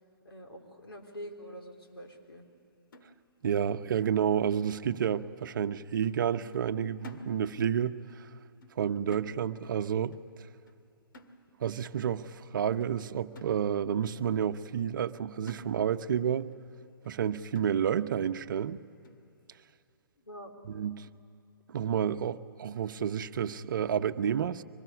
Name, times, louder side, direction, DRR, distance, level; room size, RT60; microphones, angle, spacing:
voice 1, 0.2-2.5 20.2-20.5, equal, 85° left, 3.6 m, -45 dB
sound 1, 2.9-4.2 4.5-4.7 5.0-5.7 6.0-6.3 6.5-7.8 8.1-8.3 8.6-9.8 10.1-10.4 10.7-10.8 11.1-11.8 12.3-12.4 12.8-12.9 13.4-14.0 14.4-14.5 15.0-15.2 15.5-16.2 16.5-16.6 17.0-17.2 17.6-18.1 18.6-18.7 19.0-19.3, right 1 dB, 60° left, 1.8 m, -53 dB
voice 2, 3.4-8.3 8.8-10.2 11.6-16.5 17.0-18.8 20.7-21.1 21.7-24.6, right 8 dB, 55° right, 0.8 m, -30 dB
24.0 x 19.5 x 9.7 m
hypercardioid pair, 135°, 12 cm